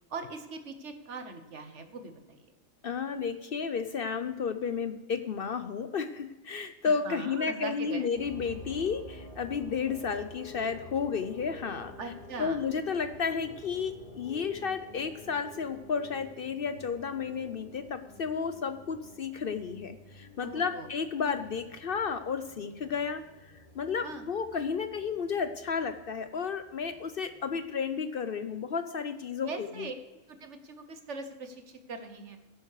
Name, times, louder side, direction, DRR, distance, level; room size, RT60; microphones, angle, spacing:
voice 1, 0.1-2.5 7.0-8.1 12.0-12.6 20.4-20.9 24.0-24.2 29.4-29.9 30.4-32.4, right 3 dB, 65° right, 8 dB, 1.5 m, -41 dB
voice 2, 2.8-11.9 12.4-29.9, left 6 dB, 55° left, 10 dB, 0.8 m, -32 dB
sound 1, 8.1-27.7, left 1 dB, 40° left, 1.7 m, -50 dB
11.0 x 9.4 x 4.7 m, 1.1 s
omnidirectional pair, 1.3 m